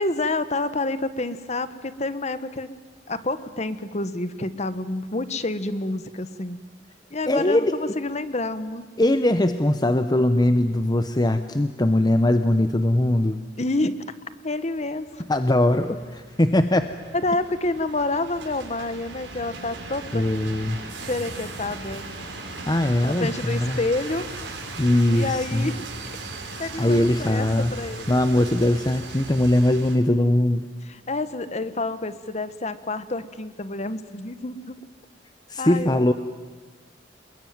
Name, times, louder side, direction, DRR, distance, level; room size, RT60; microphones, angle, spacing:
voice 1, 0.0-2.7 3.1-6.6 7.1-8.9 13.6-13.9 14.4-15.2 17.1-20.2 21.1-22.1 23.0-24.3 25.1-25.9 26.6-28.1 30.9-34.7 35.6-36.1, left 2 dB, 40° left, 12 dB, 1.2 m, -28 dB
voice 2, 7.3-7.8 9.0-13.4 15.3-16.9 20.1-20.8 22.7-23.8 24.8-25.7 26.8-27.7 28.1-30.7 35.5-36.1, left 1 dB, 20° left, 9 dB, 0.8 m, -21 dB
sound 1, 14.7-30.0, right 3 dB, 80° right, 5.5 m, -38 dB
sound 2, 25.2-34.9, equal, 60° left, 5.5 m, -54 dB
27.5 x 21.5 x 9.4 m, 1.4 s
head